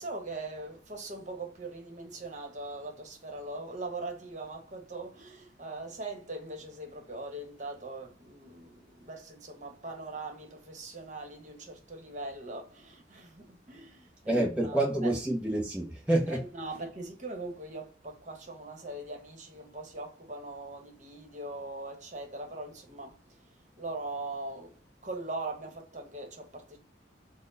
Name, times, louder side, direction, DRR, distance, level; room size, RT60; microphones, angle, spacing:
voice 1, 0.0-15.2 16.2-26.8, right 2 dB, 40° right, 1.1 m, -41 dB
voice 2, 14.3-16.4, right 1 dB, 5° right, 0.7 m, -28 dB
4.3 x 2.2 x 3.8 m
head